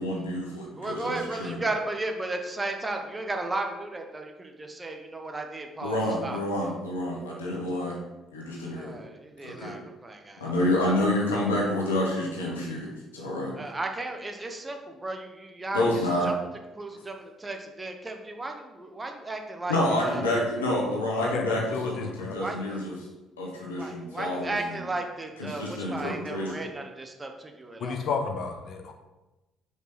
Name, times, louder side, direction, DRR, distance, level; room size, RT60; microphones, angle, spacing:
voice 1, 0.0-1.6 5.8-8.0 8.3-9.0 9.4-9.7 10.4-13.5 15.7-16.3 19.7-22.9 23.4-24.7 25.4-26.6, left 1 dB, 85° left, -3 dB, 1.6 m, -28 dB
voice 2, 0.8-6.4 8.7-10.5 13.6-16.3 16.8-19.8 20.0-20.3 22.3-22.8 23.7-28.0, right 2 dB, 25° right, 4 dB, 1.2 m, -35 dB
voice 3, 21.1-22.3 27.8-28.9, left 5 dB, 55° left, 4 dB, 1.1 m, -31 dB
5.3 x 5.0 x 6.0 m, 1.0 s
hypercardioid pair, 50°, 0 cm